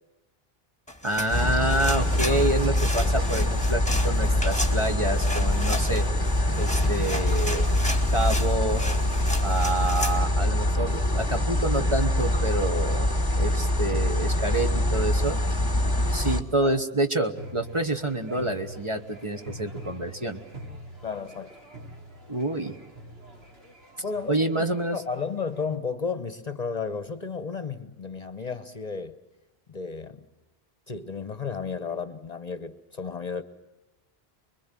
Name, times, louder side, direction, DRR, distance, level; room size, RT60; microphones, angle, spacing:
sound 1, 0.9-10.2, left 1 dB, 5° left, 2.2 m, -35 dB
voice 1, 1.0-6.0 6.6-7.7 8.1-8.8 9.4-13.1 13.4-15.4 16.1-20.4 22.3-22.7 24.3-25.0, right 2 dB, 30° right, 1.4 m, -28 dB
sound 2, 1.3-16.4, left 1 dB, 20° left, 1.5 m, -24 dB
sound 3, 17.3-25.7, equal, 75° right, 3.2 m, -44 dB
voice 2, 21.0-21.6 24.0-29.2 29.7-30.2 30.9-33.4, left 5 dB, 40° left, 1.0 m, -33 dB
25.5 x 22.5 x 7.6 m
omnidirectional pair, 1.0 m